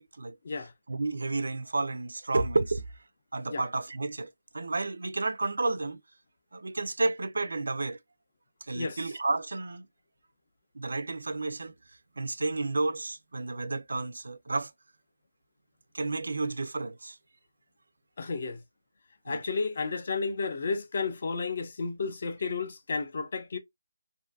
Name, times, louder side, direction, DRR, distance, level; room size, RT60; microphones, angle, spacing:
voice 1, 0.0-0.4 0.9-2.8 3.3-6.0 6.5-8.0 8.7-9.9 10.7-11.7 12.2-14.7 15.9-17.2 19.3-19.4, right 3 dB, 80° right, 0.3 m, -31 dB
voice 2, 18.2-18.6 19.3-23.6, left 4 dB, 40° left, 0.4 m, -32 dB
2.5 x 2.3 x 2.3 m
hypercardioid pair, 180°, 0 cm